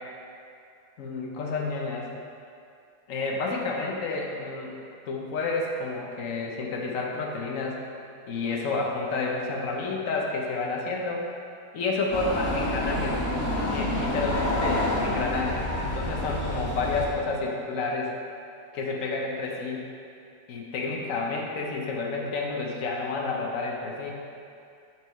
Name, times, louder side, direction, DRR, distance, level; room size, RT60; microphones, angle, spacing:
voice 1, 1.0-2.1 3.1-4.7 5.1-7.8 8.3-11.3 11.7-13.2 13.6-18.1 18.7-19.9 20.5-24.1, left 3 dB, 70° left, -1 dB, 1.2 m, -30 dB
sound 1, 12.1-17.1, left 1 dB, 85° left, 1.9 m, -28 dB
8.0 x 4.6 x 3.1 m, 2.4 s
omnidirectional pair, 1.5 m